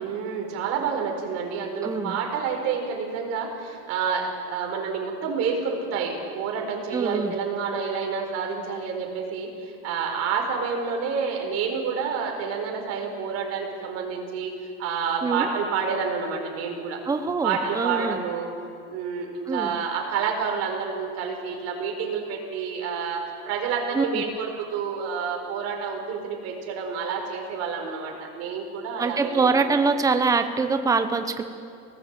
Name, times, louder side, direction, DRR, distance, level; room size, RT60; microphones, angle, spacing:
voice 1, 0.0-14.5 14.8-17.0 17.4-18.5 18.9-30.0, right 6 dB, 45° right, 2 dB, 4.9 m, -29 dB
voice 2, 1.8-2.2 6.9-7.3 15.2-15.5 17.1-18.2 19.5-19.7 23.9-24.2 29.0-31.4, right 4 dB, 10° right, 8 dB, 1.0 m, -24 dB
23.5 x 19.0 x 7.6 m, 2.6 s
supercardioid pair, 150°, 34 cm